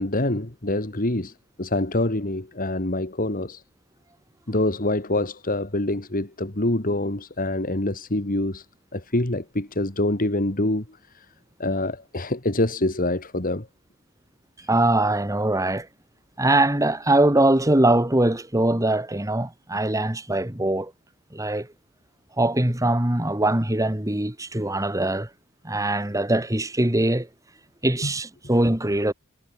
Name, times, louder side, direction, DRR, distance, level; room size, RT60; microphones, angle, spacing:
voice 1, 0.0-1.3 1.6-3.6 4.5-8.7 8.9-11.3 11.6-13.7, left 1 dB, 40° left, 2.4 m, -25 dB
voice 2, 14.7-15.9 16.4-20.9 21.3-21.7 22.4-25.3 25.6-27.3 27.8-29.1, right 1 dB, 15° right, 1.8 m, -22 dB
head